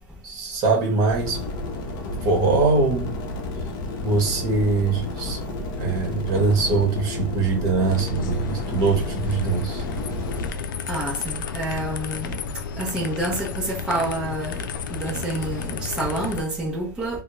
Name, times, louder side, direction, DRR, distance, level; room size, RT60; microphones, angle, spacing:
voice 1, 0.2-1.4 2.2-3.1 4.0-5.4 5.8-9.8, right 3 dB, 35° right, 1.1 m, -22 dB
sound 1, 1.1-10.5, left 2 dB, 40° left, 0.7 m, -31 dB
sound 2, 7.9-16.4, left 5 dB, 75° left, 0.4 m, -32 dB
voice 2, 10.9-12.4 12.8-14.6 14.9-17.2, right 1 dB, 5° right, 0.7 m, -28 dB
2.2 x 2.2 x 3.0 m
hypercardioid pair, 120°, 11 cm